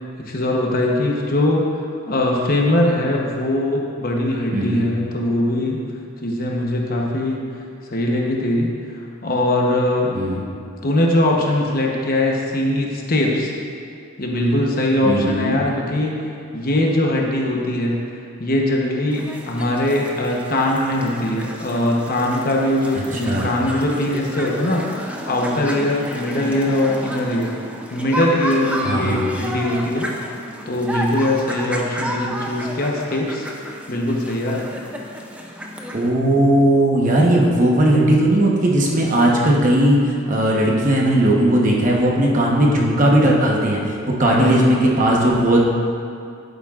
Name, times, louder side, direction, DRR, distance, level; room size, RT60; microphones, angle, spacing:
voice 1, 0.2-1.6 2.1-5.8 6.2-7.4 7.9-10.2 10.8-13.5 14.2-18.0 18.4-27.5 27.9-30.1 30.7-33.5 33.9-34.6 44.2-44.9, left 1 dB, 45° left, -1 dB, 1.0 m, -21 dB
voice 2, 4.5-4.9 10.1-10.4 15.0-15.6 23.0-23.5 28.8-29.3 35.9-45.6, right 1 dB, 35° right, -2 dB, 1.1 m, -17 dB
sound 1, 19.1-36.1, equal, 5° right, 0.5 m, -32 dB
11.0 x 8.8 x 2.5 m, 2.4 s
head